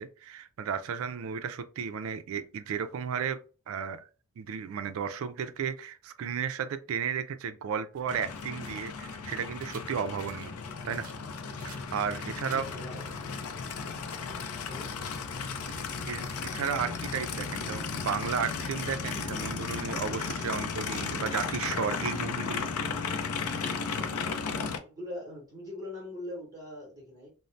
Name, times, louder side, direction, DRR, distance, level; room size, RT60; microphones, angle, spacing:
voice 1, 0.0-3.4 3.7-4.0 4.4-10.6 10.8-11.0 11.6-12.7 16.1-22.7, right 7 dB, 70° right, 0.3 m, -34 dB
sound 1, 7.9-17.9, right 3 dB, 35° right, 0.7 m, -56 dB
Aircraft, 8.1-24.8, left 5 dB, 85° left, 0.4 m, -35 dB
voice 2, 12.5-13.1 14.2-14.9 24.6-27.3, left 1 dB, 15° right, 0.9 m, -42 dB
2.6 x 2.0 x 3.1 m
head